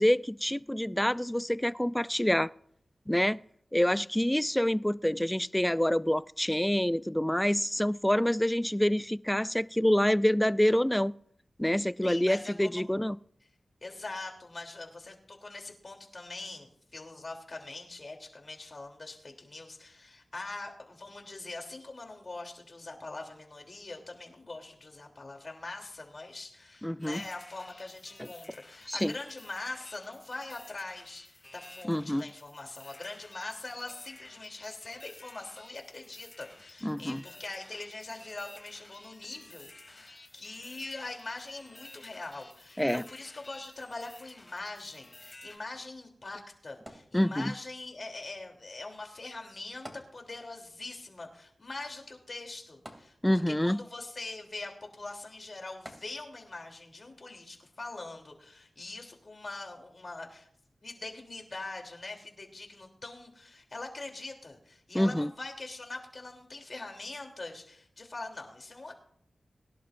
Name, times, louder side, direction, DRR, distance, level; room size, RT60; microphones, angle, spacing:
voice 1, 0.0-2.5 3.1-3.4 3.7-11.1 11.6-13.2 26.8-27.2 28.9-29.1 31.9-32.3 36.8-37.2 42.8-43.0 47.1-47.5 53.2-53.8 64.9-65.3, left 1 dB, 10° left, 0.4 m, -27 dB
voice 2, 12.0-12.9 13.8-60.5 60.8-68.9, left 2 dB, 50° left, 3.2 m, -43 dB
sound 1, 27.0-45.6, left 2 dB, 35° left, 3.0 m, -53 dB
sound 2, 46.9-47.8 49.8-50.7 51.0-51.1 52.9-53.7 55.8-56.6 57.3-57.4, right 1 dB, 20° right, 2.9 m, -49 dB
23.0 x 11.0 x 2.6 m
cardioid pair, 50°, 0 cm